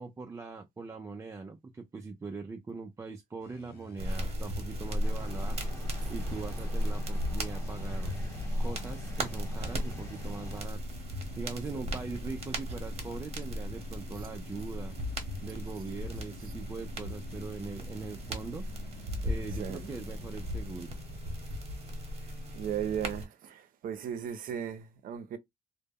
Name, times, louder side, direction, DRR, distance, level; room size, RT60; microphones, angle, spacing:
voice 1, 0.0-5.6 6.1-8.1 8.6-10.9 11.4-15.0 15.4-18.6 19.2-21.0, right 4 dB, 15° right, 0.3 m, -41 dB
sound 1, 3.4-23.1, left 3 dB, 70° left, 0.7 m, -50 dB
sound 2, 4.0-23.3, equal, 40° right, 0.9 m, -36 dB
sound 3, 5.0-10.6, left 2 dB, 15° left, 0.9 m, -48 dB
voice 2, 19.5-19.9 22.5-25.4, right 9 dB, 55° right, 0.6 m, -37 dB
2.1 x 2.0 x 3.3 m
cardioid pair, 110°, 17 cm